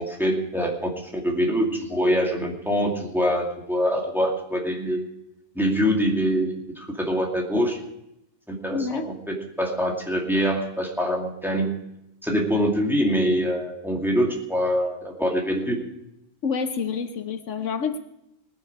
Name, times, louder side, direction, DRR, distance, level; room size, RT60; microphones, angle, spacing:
voice 1, 0.0-5.0 5.5-7.8 8.5-11.8 12.2-15.8, equal, ahead, -1 dB, 2.5 m, -24 dB
voice 2, 8.7-9.1 16.4-18.0, left 5 dB, 75° left, 8 dB, 1.2 m, -28 dB
19.5 x 9.5 x 4.8 m, 0.83 s
omnidirectional pair, 1.3 m